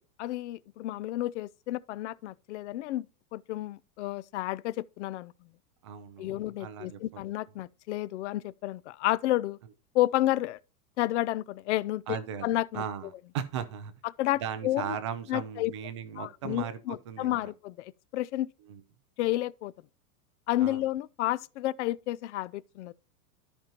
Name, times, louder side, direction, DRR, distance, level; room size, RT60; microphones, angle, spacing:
voice 1, 0.2-3.1 3.3-5.3 6.2-9.6 9.9-10.6 11.0-12.0 12.4-12.8 14.2-15.0 15.3-15.7 16.2-18.5 19.2-19.7 20.5-22.9, left 15 dB, 50° left, 0.4 m, -31 dB
voice 2, 5.8-7.2 12.1-13.9 14.3-17.5 18.7-18.8 20.6-20.8, right 8 dB, 20° right, 0.3 m, -37 dB
13.0 x 5.3 x 2.8 m
supercardioid pair, 150°, 47 cm